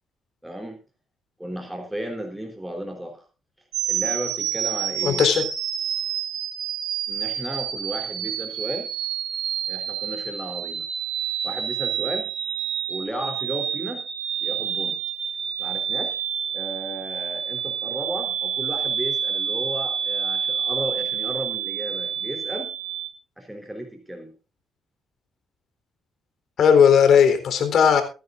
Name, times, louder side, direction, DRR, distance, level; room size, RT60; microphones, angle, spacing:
voice 1, 0.4-0.8 1.4-3.3 3.9-5.3 7.1-8.9 9.7-10.9 11.4-12.3 12.9-14.0 14.4-15.0 15.6-16.2 16.5-22.7 23.4-24.3, equal, 5° right, 3 dB, 3.7 m, -34 dB
sound 1, 3.7-23.1, right 9 dB, 80° right, 2.9 m, -28 dB
voice 2, 5.0-5.4 26.6-28.0, left 7 dB, 65° left, 8 dB, 3.8 m, -16 dB
23.5 x 10.5 x 2.6 m, 0.33 s
cardioid pair, 90°, 0 cm